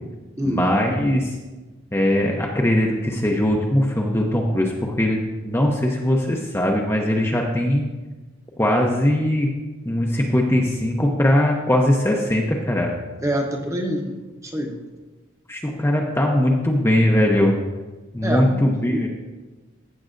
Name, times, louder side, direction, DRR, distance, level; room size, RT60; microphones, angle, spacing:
voice 1, 0.5-1.3 1.9-7.8 8.6-9.5 9.9-12.9 15.5-17.6 18.1-19.1, left 1 dB, 10° left, -1 dB, 0.6 m, -20 dB
voice 2, 13.2-14.1 14.4-14.7 18.2-19.1, right 1 dB, 15° right, 1 dB, 0.9 m, -26 dB
15.5 x 7.4 x 2.6 m, 1.2 s
head